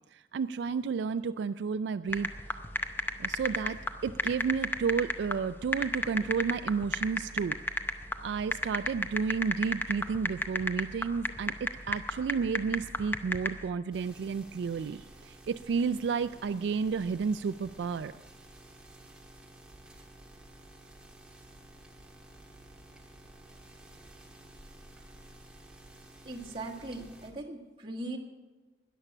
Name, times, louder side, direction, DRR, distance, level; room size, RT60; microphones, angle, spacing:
voice 1, 0.1-2.3 3.2-7.6 8.2-18.1, right 5 dB, 75° right, 12 dB, 0.3 m, -31 dB
sound 1, 2.1-13.6, left 2 dB, 10° left, 0.6 m, -31 dB
sound 2, 13.9-27.3, right 1 dB, 5° right, 1.5 m, -53 dB
voice 2, 26.2-28.2, right 2 dB, 30° right, -2 dB, 1.7 m, -39 dB
13.0 x 10.0 x 6.1 m, 1.2 s
head